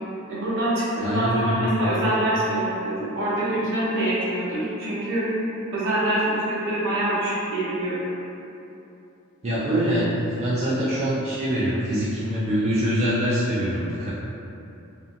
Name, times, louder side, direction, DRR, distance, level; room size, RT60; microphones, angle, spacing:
voice 1, 0.0-0.8 1.1-5.4 5.7-8.1, right 1 dB, 60° right, -9 dB, 0.8 m, -25 dB
voice 2, 1.0-1.6 9.4-14.1, equal, 30° right, -10 dB, 0.4 m, -24 dB
2.6 x 2.6 x 2.4 m, 2.8 s
head